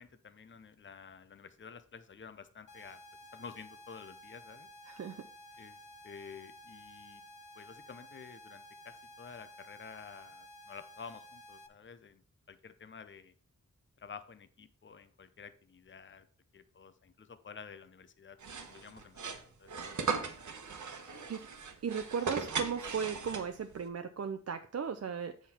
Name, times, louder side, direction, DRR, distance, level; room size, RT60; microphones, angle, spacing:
voice 1, 0.0-3.0 3.3-4.7 5.6-5.8 6.0-7.2 7.6-12.2 12.5-13.3 14.0-16.3 16.5-18.4 18.7-20.3 21.1-21.4, left 6 dB, 40° left, 11 dB, 0.7 m, -51 dB
sound 1, 2.7-11.7, left 1 dB, 85° left, 0.8 m, -53 dB
voice 2, 4.9-5.2 21.0-21.4 21.8-25.3, right 6 dB, 55° right, 7 dB, 0.5 m, -36 dB
sound 2, 18.4-23.8, right 5 dB, 75° right, 1.1 m, -38 dB
8.0 x 5.8 x 4.3 m, 0.44 s
wide cardioid pair, 85°, 30 cm